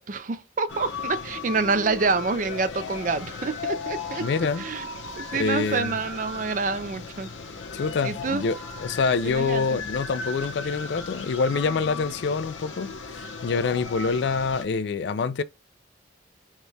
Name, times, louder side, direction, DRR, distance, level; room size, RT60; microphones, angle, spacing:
voice 1, 0.0-4.3 4.6-4.9 5.2-7.3 8.0-8.5 9.2-9.8 11.5-12.1, right 4 dB, 40° right, 0.4 m, -27 dB
sound 1, 0.7-14.6, left 4 dB, 85° left, 0.9 m, -36 dB
voice 2, 4.2-4.6 5.3-6.0 7.7-15.4, left 5 dB, 65° left, 0.3 m, -26 dB
4.4 x 2.2 x 3.2 m
head